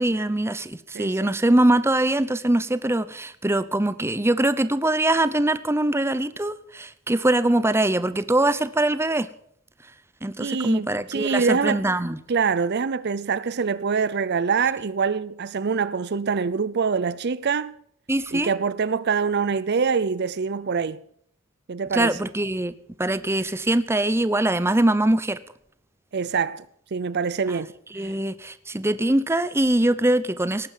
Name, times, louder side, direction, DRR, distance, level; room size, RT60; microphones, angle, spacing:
voice 1, 0.0-9.3 10.2-12.2 18.1-18.5 21.9-22.7 23.0-25.4 27.9-30.7, right 1 dB, 10° right, 0.7 m, -22 dB
voice 2, 0.9-1.4 10.4-11.8 12.3-17.7 18.3-21.0 21.7-22.2 26.1-26.6 26.9-27.7, right 5 dB, 55° right, 0.6 m, -25 dB
18.0 x 9.6 x 7.3 m
head